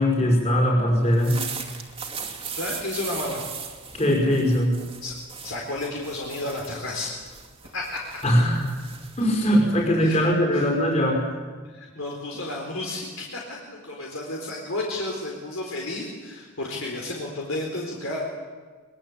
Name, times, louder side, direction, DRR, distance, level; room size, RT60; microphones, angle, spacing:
voice 1, 0.0-1.4 3.9-4.8 8.2-8.7 9.2-11.3, equal, 30° left, 0 dB, 5.6 m, -21 dB
sound 1, 1.0-10.3, right 6 dB, 25° right, 2.5 m, -38 dB
voice 2, 2.5-3.4 5.0-5.2 5.4-7.2 7.7-8.2 10.0-10.3 10.5-10.7 11.6-18.2, left 2 dB, 65° left, -1 dB, 4.3 m, -32 dB
23.0 x 22.5 x 8.7 m, 1.5 s
head